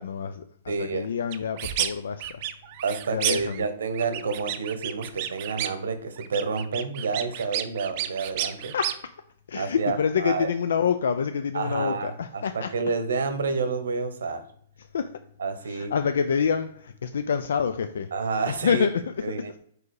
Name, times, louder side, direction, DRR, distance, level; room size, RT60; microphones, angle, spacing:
voice 1, 0.0-2.4 3.1-3.7 7.3-7.4 8.7-9.0 9.5-12.7 14.8-15.1 15.6-18.1 18.5-19.3, left 6 dB, 75° left, 10 dB, 0.4 m, -27 dB
voice 2, 0.7-1.1 2.8-8.7 9.5-10.5 11.5-14.4 15.4-16.0 18.1-18.9 19.2-19.6, right 4 dB, 85° right, 10 dB, 0.9 m, -29 dB
sound 1, 1.3-1.9 2.2-3.6 3.9-5.9 6.2-9.0, right 12 dB, 40° right, 0.5 m, -31 dB
4.8 x 4.8 x 4.7 m, 0.64 s
hypercardioid pair, 155°, 0 cm